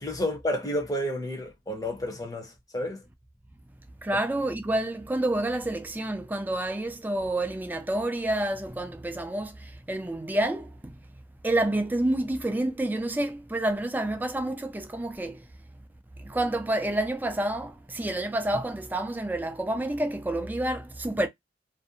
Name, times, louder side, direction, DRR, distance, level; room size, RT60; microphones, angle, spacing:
voice 1, 0.0-3.0, left 1 dB, 20° left, 0.7 m, -31 dB
voice 2, 4.0-9.5 9.9-10.9 11.4-15.4 16.3-21.3, right 1 dB, 10° right, 0.3 m, -28 dB
2.5 x 2.1 x 2.7 m
head